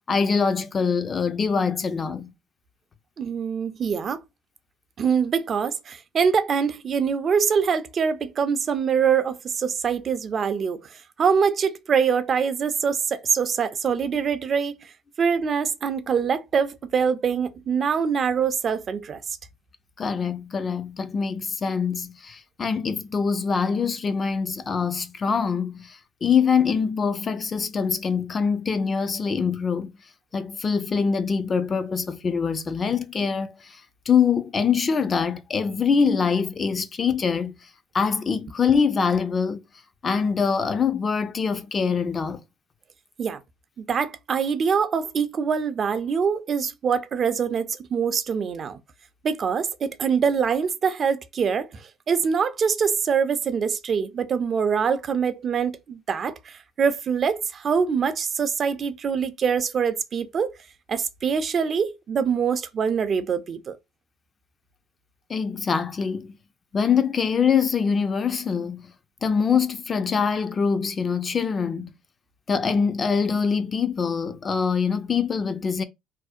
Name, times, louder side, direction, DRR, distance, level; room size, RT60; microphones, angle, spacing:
voice 1, 0.1-2.3 20.0-30.0 30.3-33.8 34.1-37.6 37.9-39.6 40.0-42.4 65.3-66.4 66.7-68.9 69.2-71.9 72.5-75.8, left 6 dB, 35° left, 0.4 m, -24 dB
voice 2, 3.2-4.2 5.0-14.9 15.2-19.2 43.2-43.4 43.8-48.8 49.2-60.5 60.9-63.8, right 6 dB, 45° right, 0.4 m, -24 dB
2.6 x 2.0 x 2.4 m
supercardioid pair, 85°, 0 cm